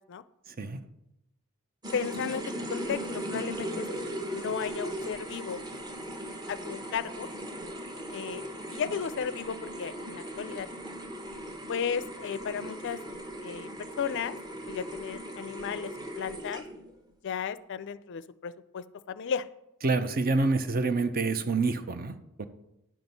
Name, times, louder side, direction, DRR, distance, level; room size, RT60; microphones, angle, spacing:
sound 1, 1.8-16.9, equal, 20° right, 1.0 m, -38 dB
voice 1, 1.9-5.6 6.5-7.3 8.1-10.7 11.7-13.0 13.4-14.4 14.7-16.7 17.2-19.5 19.9-20.0, left 7 dB, 55° left, 15 dB, 0.4 m, -35 dB
voice 2, 19.8-22.5, right 3 dB, 40° right, 10 dB, 0.7 m, -27 dB
10.5 x 6.1 x 5.4 m, 0.87 s
head